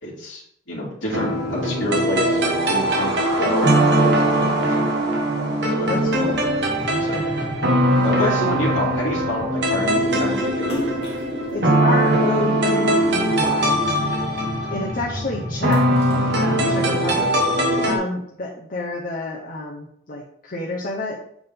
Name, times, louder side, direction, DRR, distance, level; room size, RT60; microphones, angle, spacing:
voice 1, 0.0-3.7 4.0-5.0 5.6-6.2 7.0-7.3 8.0-10.9, left 1 dB, 75° left, -6 dB, 2.2 m, -28 dB
sound 1, 1.1-18.0, right 1 dB, 60° right, 1.3 m, -21 dB
voice 2, 5.9-6.4 8.2-8.3 11.5-13.8 14.7-16.0 16.3-17.3 17.8-21.2, left 2 dB, 45° left, -2 dB, 0.9 m, -28 dB
Splash splatter, 10.6-13.2 13.6-15.1 15.4-17.1, left 1 dB, 30° left, 1.4 m, -36 dB
8.1 x 3.7 x 3.6 m, 0.70 s
head